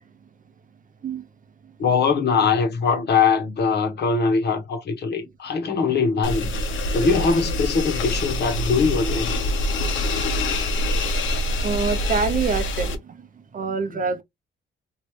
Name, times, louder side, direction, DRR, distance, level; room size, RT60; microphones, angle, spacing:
voice 1, 1.8-6.5 6.9-9.3, left 5 dB, 55° left, 1.2 m, -21 dB
sound 1, 6.2-12.9, left 1 dB, 80° left, 1.0 m, -25 dB
voice 2, 10.8-11.3 11.6-14.2, right 5 dB, 40° right, 0.7 m, -27 dB
3.2 x 2.7 x 3.2 m
cardioid pair, 90°, 20 cm